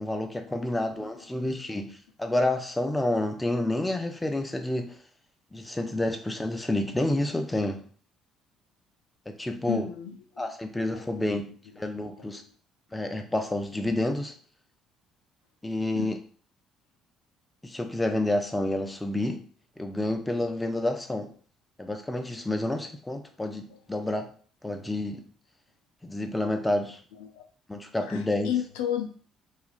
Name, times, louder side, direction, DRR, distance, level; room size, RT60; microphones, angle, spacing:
voice 1, 0.0-5.0 5.5-7.8 9.3-9.8 10.4-12.4 12.9-14.3 15.6-16.2 17.6-19.4 19.8-21.3 21.8-24.3 24.6-25.2 26.0-27.0 27.7-28.5, left 1 dB, 10° left, 6 dB, 0.5 m, -29 dB
voice 2, 9.7-10.5 10.9-11.0 12.2-12.4 15.9-16.1 20.3-20.5 27.2-27.4 28.1-29.1, left 10 dB, 90° left, 5 dB, 0.3 m, -33 dB
2.8 x 2.3 x 2.4 m, 0.43 s
supercardioid pair, 70°, 0 cm